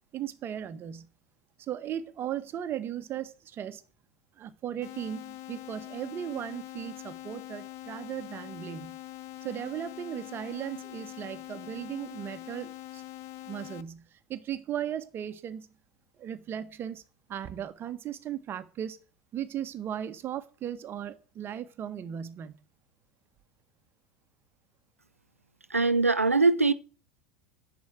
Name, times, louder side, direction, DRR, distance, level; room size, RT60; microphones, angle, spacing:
voice 1, 0.1-1.1 1.6-3.8 4.4-8.9 9.4-13.0 13.5-15.7 16.2-17.0 17.3-19.0 19.3-22.5, right 10 dB, 30° right, 1.7 m, -37 dB
sound 1, 4.8-13.8, left 15 dB, 40° left, 1.1 m, -44 dB
voice 2, 25.7-26.7, right 3 dB, 85° right, 0.8 m, -22 dB
11.0 x 7.4 x 9.1 m
figure-of-eight pair, 80°, 7 cm